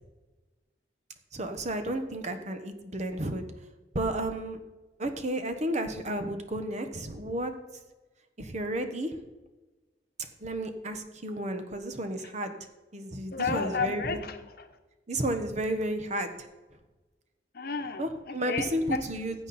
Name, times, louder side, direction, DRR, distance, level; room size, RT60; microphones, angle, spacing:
voice 1, 1.3-3.5 3.9-4.6 5.0-7.5 8.4-9.1 10.4-12.5 12.9-14.2 15.1-16.5 18.0-19.5, right 1 dB, 40° right, 7 dB, 1.2 m, -32 dB
voice 2, 13.3-14.8 17.5-19.0, left 5 dB, 60° left, 8 dB, 1.1 m, -32 dB
15.5 x 8.4 x 4.3 m, 1.2 s
head